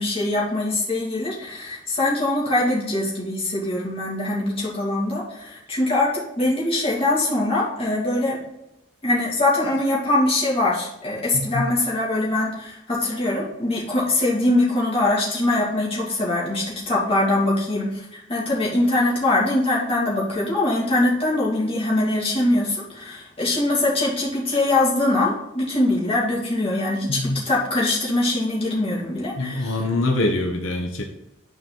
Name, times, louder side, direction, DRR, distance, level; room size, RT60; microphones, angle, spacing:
voice 1, 0.0-8.4 9.0-29.7, left 2 dB, 30° left, -6 dB, 2.4 m, -22 dB
voice 2, 11.3-11.7 27.1-27.4 29.4-31.0, left 2 dB, 85° left, 2 dB, 1.1 m, -24 dB
9.5 x 4.7 x 3.9 m, 0.88 s
head